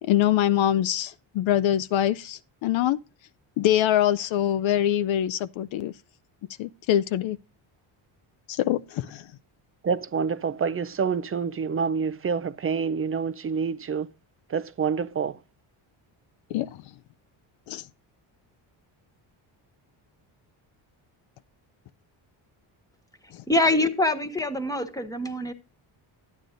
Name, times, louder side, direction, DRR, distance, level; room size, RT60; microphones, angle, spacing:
voice 1, 0.0-3.0 3.6-5.9 6.6-7.4 8.5-9.3 16.5-16.8 17.7-17.8 23.3-23.4, left 11 dB, 65° left, 0.6 m, -24 dB
voice 2, 9.8-14.1 14.5-15.4, right 6 dB, 30° right, 0.4 m, -27 dB
voice 3, 23.5-25.5, left 2 dB, 5° left, 1.3 m, -24 dB
12.5 x 9.5 x 2.5 m
cardioid pair, 100°, 49 cm